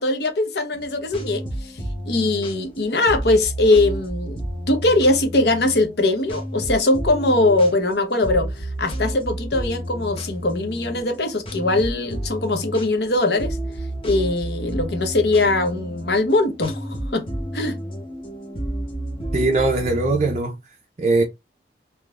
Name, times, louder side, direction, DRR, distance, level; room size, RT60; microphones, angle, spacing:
voice 1, 0.0-1.8 2.1-4.4 4.7-13.6 14.0-17.3 17.5-17.8, left 2 dB, 65° left, 0.9 m, -21 dB
sound 1, 0.7-20.4, right 1 dB, 30° left, 0.9 m, -31 dB
voice 2, 19.3-20.5 21.0-21.2, right 2 dB, 35° right, 0.4 m, -20 dB
3.7 x 2.8 x 2.4 m
head